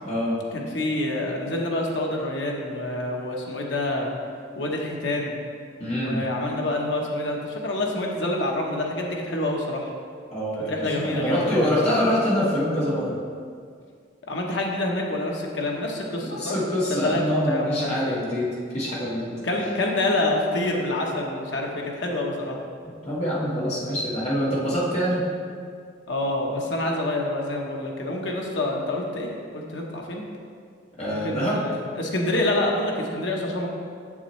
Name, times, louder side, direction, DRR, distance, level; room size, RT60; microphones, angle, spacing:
voice 1, 0.0-0.3 5.8-6.2 10.3-13.1 16.3-18.5 18.7-19.3 23.0-25.2 31.0-31.6, equal, 35° left, -7 dB, 1.7 m, -25 dB
voice 2, 0.5-4.1 4.6-5.4 5.9-9.9 10.7-11.7 14.3-16.6 16.9-18.2 19.4-21.7 22.0-22.6 26.1-29.3 29.5-30.2 31.1-33.7, left 1 dB, 80° left, 0 dB, 1.0 m, -27 dB
7.3 x 7.1 x 3.2 m, 2.2 s
head